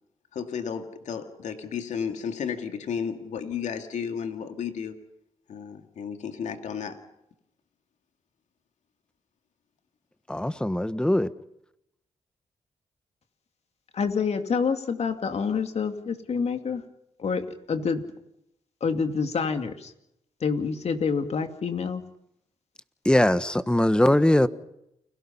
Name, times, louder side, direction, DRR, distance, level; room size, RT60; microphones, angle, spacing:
voice 1, 0.3-4.9 5.5-7.0, left 7 dB, 80° left, 2.2 m, -33 dB
voice 2, 10.3-11.3 23.0-24.5, left 1 dB, 5° left, 1.3 m, -21 dB
voice 3, 13.9-16.8 17.2-18.0 18.8-19.9 20.4-22.0, left 5 dB, 60° left, 2.5 m, -27 dB
29.5 x 21.5 x 5.7 m
cardioid pair, 65°, 12 cm